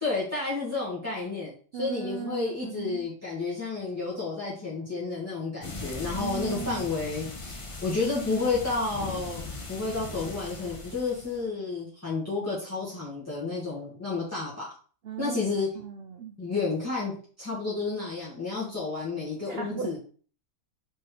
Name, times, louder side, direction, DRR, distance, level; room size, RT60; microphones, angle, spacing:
voice 1, 0.0-14.7 15.2-15.7 16.4-20.0, left 3 dB, 10° left, -7 dB, 2.1 m, -31 dB
voice 2, 1.7-3.1 6.2-6.9 15.0-15.4 15.7-16.4 19.5-20.0, right 7 dB, 60° right, 4 dB, 0.7 m, -37 dB
sound 1, 5.6-11.4, left 3 dB, 25° left, 0.8 m, -39 dB
4.4 x 4.3 x 5.0 m, 0.41 s
omnidirectional pair, 1.5 m